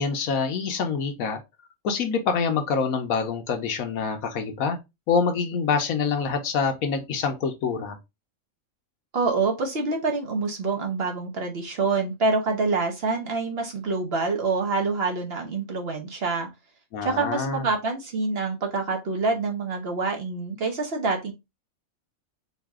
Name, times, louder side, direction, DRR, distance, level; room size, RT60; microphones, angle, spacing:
voice 1, 0.0-1.4 1.8-4.8 5.1-8.0 16.9-17.6, left 5 dB, 80° left, 1.2 m, -26 dB
voice 2, 9.1-16.5 17.0-21.3, right 3 dB, 50° right, 1.1 m, -26 dB
4.0 x 2.7 x 3.4 m
omnidirectional pair, 1.5 m